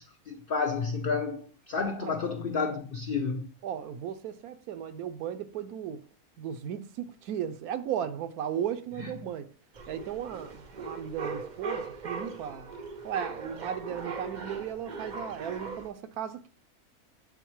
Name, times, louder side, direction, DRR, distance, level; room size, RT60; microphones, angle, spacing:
voice 1, 0.0-3.5 9.0-9.1, left 4 dB, 75° left, 0.5 m, -31 dB
voice 2, 3.6-6.0 6.4-9.5 9.9-12.7 13.0-16.5, right 9 dB, 80° right, 1.1 m, -36 dB
sound 1, 9.7-15.9, right 4 dB, 55° right, 0.5 m, -39 dB
8.0 x 3.9 x 3.1 m
omnidirectional pair, 1.6 m